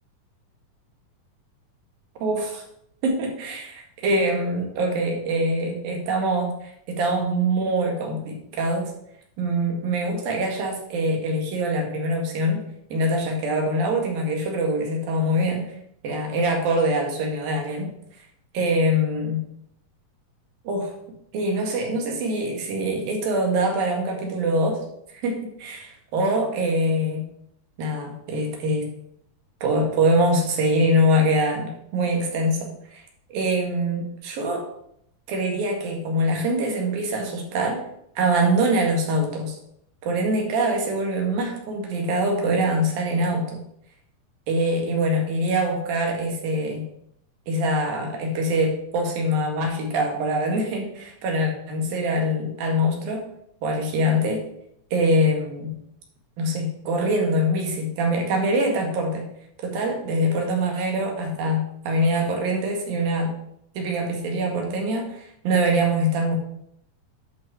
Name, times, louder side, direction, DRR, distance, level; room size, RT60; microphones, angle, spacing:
voice 1, 2.2-2.6 3.0-8.9 9.4-12.6 12.9-15.7 16.0-17.9 18.5-19.4 20.7-20.9 21.3-24.8 25.2-27.2 27.8-28.9 29.6-33.0 33.3-34.7 35.3-37.8 38.2-39.6 40.0-43.6 44.5-46.8 47.5-53.2 53.6-54.4 54.9-55.8 56.4-59.2 59.6-63.3 63.8-66.4, right 1 dB, 90° right, 1 dB, 3.7 m, -24 dB
11.0 x 5.5 x 4.8 m, 0.72 s
omnidirectional pair, 4.0 m